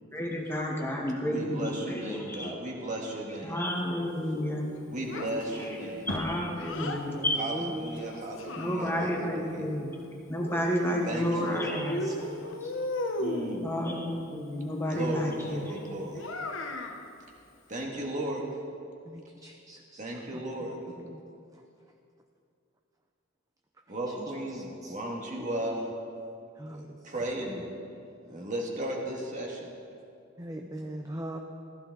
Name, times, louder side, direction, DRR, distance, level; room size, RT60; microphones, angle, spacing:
voice 1, 0.1-2.5 3.4-4.7 5.7-7.4 8.5-9.9 10.3-12.4 12.6-12.7 13.6-15.9, equal, 10° left, -1 dB, 1.3 m, -31 dB
voice 2, 1.3-3.6 4.9-6.1 7.4-9.7 11.0-11.8 13.2-13.7 14.9-16.3 17.7-18.4 20.0-20.8 23.9-25.9 26.6-27.7 28.2-29.7, right 1 dB, 35° right, -1 dB, 1.9 m, -35 dB
Child speech kid speaking, 5.1-7.1 8.0-9.2 10.3-11.5 11.9-13.6 16.1-17.0, left 1 dB, 65° left, 1.0 m, -35 dB
voice 3, 7.5-8.0 8.8-9.7 10.9-11.1 19.1-20.0 21.1-21.2 24.8-24.9 26.6-27.0 30.4-31.4, right 1 dB, 15° right, 3 dB, 0.6 m, -39 dB
15.0 x 14.0 x 4.0 m, 2.5 s
head